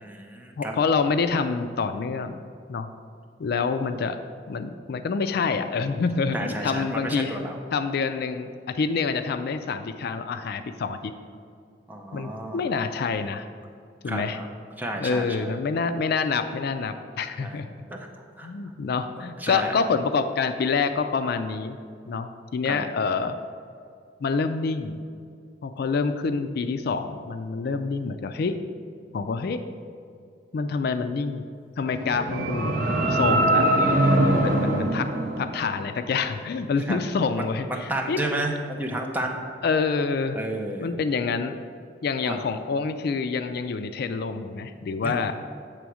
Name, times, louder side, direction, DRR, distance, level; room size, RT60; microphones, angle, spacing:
voice 1, 0.0-0.8 6.3-7.6 11.9-12.7 14.0-14.5 14.8-15.5 17.4-17.6 17.9-18.0 18.4-18.5 19.4-19.8 22.6-22.9 36.9-37.0 37.7-39.4 40.4-40.9 42.2-42.4 45.0-45.3, right 1 dB, 10° right, 1 dB, 0.7 m, -31 dB
voice 2, 0.6-2.4 2.7-2.9 3.4-4.2 4.5-7.4 7.7-11.1 12.1-13.5 14.0-14.4 15.0-17.7 18.4-21.8 22.1-23.4 24.2-25.0 25.6-28.6 29.1-29.6 30.5-31.5 31.8-32.7 33.1-33.7 34.4-35.1 35.4-38.2 39.6-40.4 40.8-41.6 42.0-45.3, left 5 dB, 60° left, 9 dB, 0.4 m, -27 dB
sound 1, 31.8-36.1, right 1 dB, 50° right, 0.8 m, -23 dB
8.2 x 3.5 x 6.1 m, 2.3 s
head